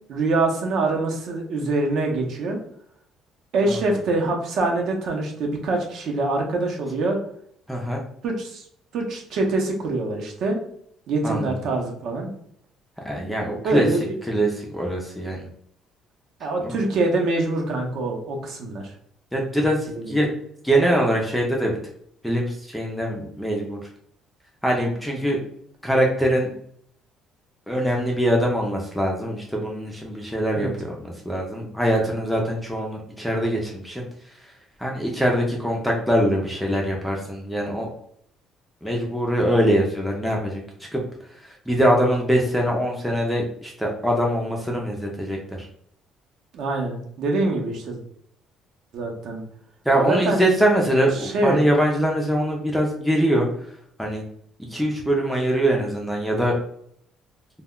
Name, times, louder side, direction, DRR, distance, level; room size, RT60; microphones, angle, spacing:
voice 1, 0.1-2.6 3.5-7.2 8.2-8.6 8.9-10.6 11.1-12.3 13.6-14.1 16.4-18.8 20.0-20.1 30.5-30.7 46.5-48.0 48.9-49.4 50.0-50.4 51.2-51.6, right 2 dB, 55° right, 1 dB, 0.6 m, -24 dB
voice 2, 3.6-4.0 7.7-8.0 11.2-11.5 13.1-13.9 14.3-15.5 16.6-16.8 19.3-20.3 20.6-21.7 22.2-23.9 24.6-25.4 25.8-26.5 27.7-34.0 34.4-34.5 34.8-37.9 38.8-40.6 40.9-41.0 41.4-45.7 49.9-53.5 54.0-54.2 54.7-56.6, equal, ahead, -1 dB, 0.4 m, -23 dB
2.1 x 2.1 x 3.5 m, 0.67 s
cardioid pair, 170°, 0 cm